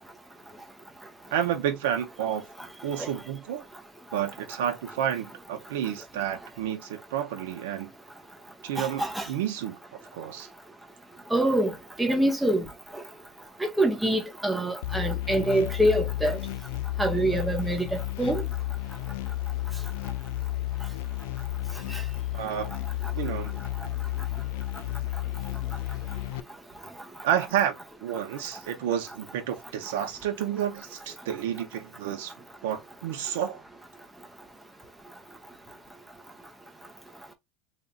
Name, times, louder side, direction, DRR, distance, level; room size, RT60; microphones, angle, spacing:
voice 1, 1.3-2.4 2.8-3.6 4.1-7.9 8.6-9.8 10.1-10.5 22.3-22.7 23.1-23.6 27.2-27.7 28.0-32.3 32.6-33.6, right 10 dB, 80° right, 1.3 m, -30 dB
voice 2, 8.8-9.2 11.3-11.7 12.0-12.6 13.8-16.4 17.0-18.4 21.9-22.0, right 1 dB, 5° right, 0.8 m, -25 dB
sound 1, 14.8-26.4, left 17 dB, 85° left, 0.4 m, -32 dB
3.3 x 2.8 x 4.1 m
supercardioid pair, 170°, 0 cm